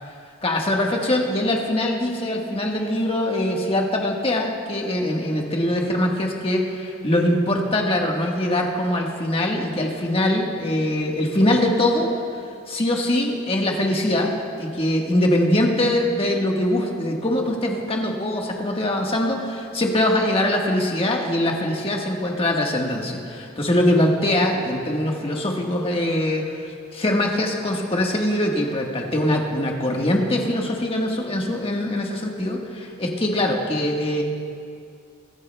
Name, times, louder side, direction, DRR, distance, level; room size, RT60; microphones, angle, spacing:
voice 1, 0.4-12.1 12.7-14.3 14.6-34.2, left 1 dB, 30° left, 0 dB, 1.4 m, -22 dB
23.0 x 12.5 x 2.3 m, 2.3 s
head